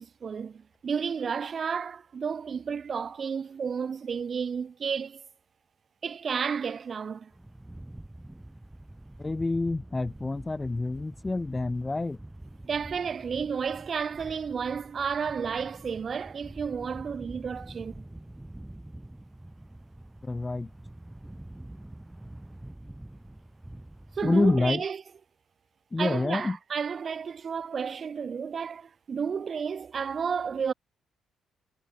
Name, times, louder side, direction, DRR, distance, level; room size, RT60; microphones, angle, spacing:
voice 1, 0.0-5.2 6.0-7.3 12.6-18.0 24.2-25.0 26.0-30.7, right 6 dB, 45° right, 0.3 m, -32 dB
sound 1, 7.3-24.6, right 1 dB, 10° right, 2.8 m, -46 dB
voice 2, 9.2-12.2 20.2-20.7 24.2-24.8 25.9-26.6, left 2 dB, 20° left, 0.6 m, -27 dB
cardioid pair, 90°, 0 cm